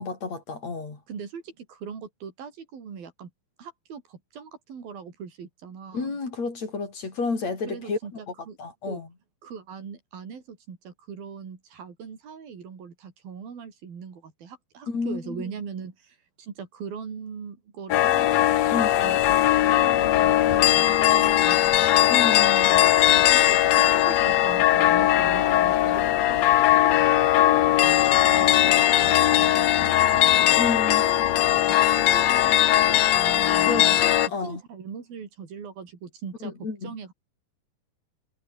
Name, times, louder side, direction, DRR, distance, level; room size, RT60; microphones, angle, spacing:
voice 1, 0.0-1.0 5.9-8.0 8.6-9.1 14.9-15.4 18.7-19.0 22.1-22.8 30.5-31.1 33.7-34.6 36.6-36.9, left 4 dB, 45° left, 6.1 m, -30 dB
voice 2, 1.1-3.3 3.6-6.1 7.7-8.6 8.9-9.0 9.4-21.9 22.7-30.6 31.0-34.0 34.4-37.1, right 6 dB, 80° right, 5.8 m, -40 dB
sound 1, 17.9-34.3, left 13 dB, 65° left, 1.8 m, -19 dB
omnidirectional pair, 4.2 m